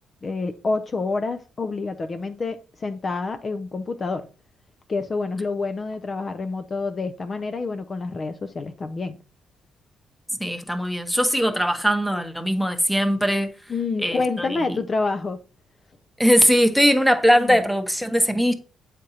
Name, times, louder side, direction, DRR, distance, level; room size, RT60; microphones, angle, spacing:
voice 1, 0.2-4.3 4.9-9.2 13.7-15.4 17.4-17.6, left 3 dB, 35° left, 0.4 m, -28 dB
voice 2, 10.4-13.5 14.0-14.8 16.2-18.5, equal, ahead, 0.8 m, -20 dB
7.5 x 5.0 x 2.8 m
cardioid pair, 90°, 0 cm